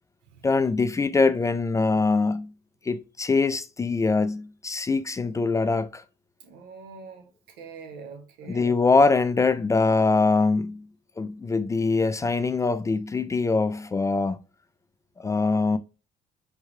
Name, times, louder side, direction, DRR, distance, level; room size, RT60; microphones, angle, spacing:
voice 1, 0.4-2.5 2.9-6.0 8.5-10.9 11.2-14.4 15.2-15.8, left 3 dB, 20° left, 0.3 m, -23 dB
voice 2, 6.4-8.8, right 5 dB, 90° right, 1.1 m, -44 dB
4.7 x 2.2 x 4.6 m
cardioid pair, 110°, 17 cm